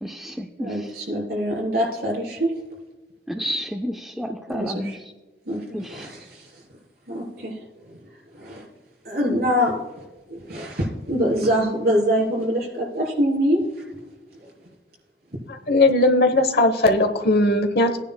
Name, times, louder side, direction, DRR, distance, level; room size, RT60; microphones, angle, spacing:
voice 1, 0.0-0.7 3.3-5.0 5.7-6.1, equal, ahead, 4 dB, 0.4 m, -30 dB
voice 2, 0.6-2.5 4.5-5.0 5.5-6.5 7.1-7.6 8.3-8.7 9.0-9.8 10.3-13.6, equal, 60° right, -2 dB, 3.8 m, -24 dB
voice 3, 15.5-18.0, left 2 dB, 60° left, 6 dB, 1.0 m, -18 dB
15.5 x 9.9 x 2.3 m, 1.2 s
head